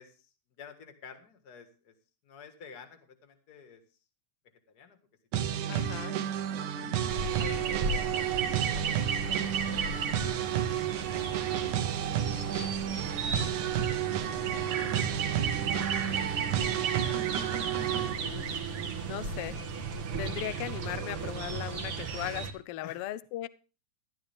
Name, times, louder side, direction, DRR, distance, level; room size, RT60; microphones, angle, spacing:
voice 1, 0.0-1.9 2.2-3.8 4.7-5.0 5.4-5.7 6.0-6.6 7.4-8.0 8.5-10.0 10.3-11.2 11.7-15.0 15.4-16.4 16.7-18.0 22.8-23.0, left 6 dB, 40° left, 7 dB, 1.8 m, -52 dB
sound 1, 5.3-18.1, right 10 dB, 75° right, 2.3 m, -31 dB
voice 2, 5.7-6.2 18.2-18.6 19.1-19.6 20.2-23.5, left 14 dB, 85° left, 16 dB, 1.2 m, -38 dB
sound 2, 7.1-22.5, right 5 dB, 55° right, 2.0 m, -34 dB
14.5 x 12.0 x 3.5 m, 0.35 s
omnidirectional pair, 3.5 m